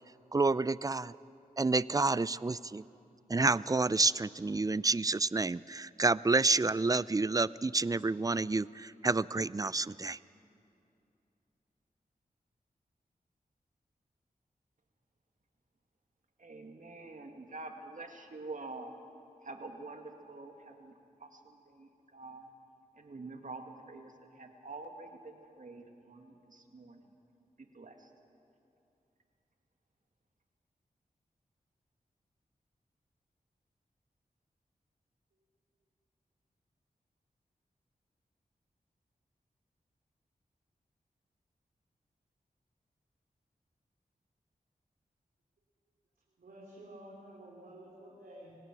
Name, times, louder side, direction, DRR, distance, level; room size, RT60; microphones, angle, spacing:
voice 1, 0.3-1.1 1.6-2.8 3.3-10.2, right 3 dB, 25° right, 19 dB, 0.4 m, -29 dB
voice 2, 16.4-18.9 19.4-20.9 21.2-22.5 23.0-27.0 27.7-27.9, right 3 dB, 60° right, 4 dB, 2.1 m, -47 dB
voice 3, 46.4-48.6, right 1 dB, 85° right, -5 dB, 3.8 m, -51 dB
26.5 x 17.0 x 6.1 m, 2.6 s
cardioid pair, 55°, 15 cm